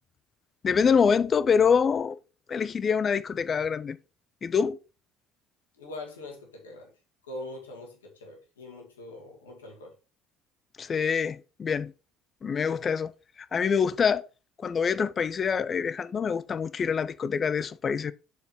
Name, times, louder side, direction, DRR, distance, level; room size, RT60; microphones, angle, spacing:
voice 1, 0.6-2.2 2.5-4.0 4.4-4.8 10.8-11.9 12.4-13.1 13.4-14.3 14.6-18.1, left 6 dB, 35° left, 0.5 m, -25 dB
voice 2, 5.7-6.9 7.2-10.0 12.7-13.0, left 2 dB, 80° left, 2.1 m, -43 dB
6.7 x 4.8 x 4.4 m
figure-of-eight pair, 60°, 0 cm